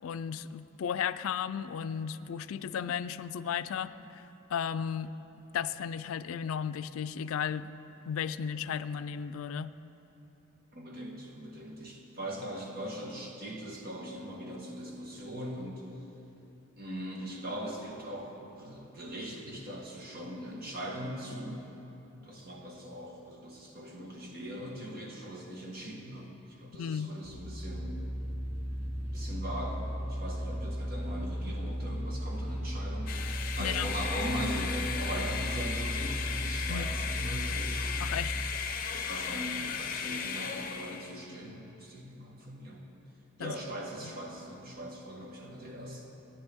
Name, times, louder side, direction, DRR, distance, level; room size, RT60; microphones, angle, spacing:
voice 1, 0.0-5.1 5.5-7.7 8.1-9.7 26.8-27.1 33.6-33.9 36.7-36.9 38.0-38.3 43.4-43.6 44.0-44.1, left 8 dB, 85° left, 13 dB, 0.4 m, -34 dB
voice 2, 10.7-15.9 16.8-21.6 22.2-26.3 26.6-28.0 29.1-33.2 33.6-37.9 38.9-42.8 43.4-46.0, equal, 45° right, -1 dB, 1.5 m, -40 dB
sound 1, 27.2-38.3, equal, 10° right, 1.3 m, -35 dB
sound 2, 33.1-41.1, left 7 dB, 45° left, 0.6 m, -36 dB
16.5 x 9.6 x 3.6 m, 3.0 s
head